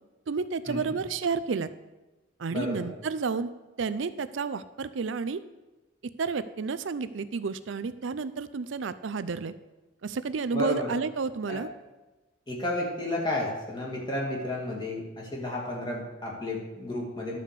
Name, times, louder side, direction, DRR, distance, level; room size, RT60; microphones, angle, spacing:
voice 1, 0.3-1.7 2.4-3.5 3.8-5.4 6.2-9.5 10.0-11.7, right 5 dB, 70° right, 14 dB, 0.5 m, -31 dB
voice 2, 2.5-2.9 10.5-10.9 11.5-11.6 12.5-17.4, left 1 dB, 25° left, -3 dB, 2.3 m, -32 dB
12.0 x 5.0 x 6.7 m, 1.1 s
head